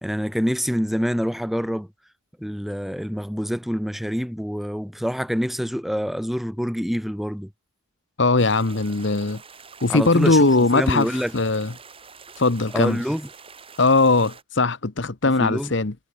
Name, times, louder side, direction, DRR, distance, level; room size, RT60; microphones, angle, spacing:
voice 1, 0.0-1.9 2.4-7.5 9.9-11.3 12.7-13.3 15.4-15.7, equal, ahead, 2.2 m, -26 dB
voice 2, 8.2-9.4 9.8-11.7 12.4-13.0 13.8-15.9, left 3 dB, 60° left, 1.1 m, -20 dB
sound 1, 8.4-14.4, right 5 dB, 25° right, 6.4 m, -46 dB
head